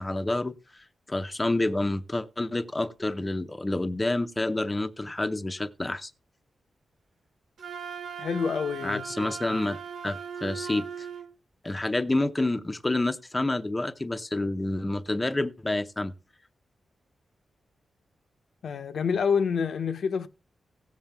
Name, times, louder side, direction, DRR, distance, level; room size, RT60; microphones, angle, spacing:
voice 1, 0.0-6.1 8.8-11.1 11.6-16.1, left 2 dB, 15° left, 0.6 m, -29 dB
Wind instrument woodwind instrument, 7.6-11.3, right 7 dB, 65° right, 1.3 m, -38 dB
voice 2, 8.2-9.6 18.6-20.3, left 6 dB, 70° left, 0.7 m, -28 dB
17.0 x 7.2 x 3.4 m
wide cardioid pair, 155°, 0 cm